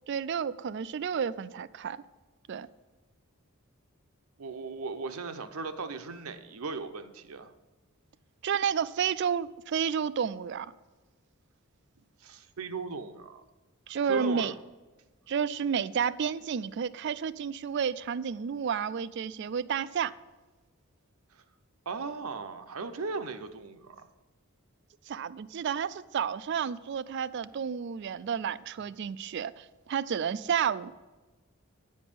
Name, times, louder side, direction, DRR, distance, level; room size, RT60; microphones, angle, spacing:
voice 1, 0.1-2.0 2.5-2.7 8.4-10.7 13.9-14.5 15.3-20.1 25.1-30.9, right 7 dB, 50° right, 0.3 m, -31 dB
voice 2, 4.4-7.5 12.2-13.4 14.0-14.5 21.3-21.4 21.9-24.1, right 4 dB, 75° right, 0.7 m, -37 dB
9.5 x 5.3 x 6.8 m
head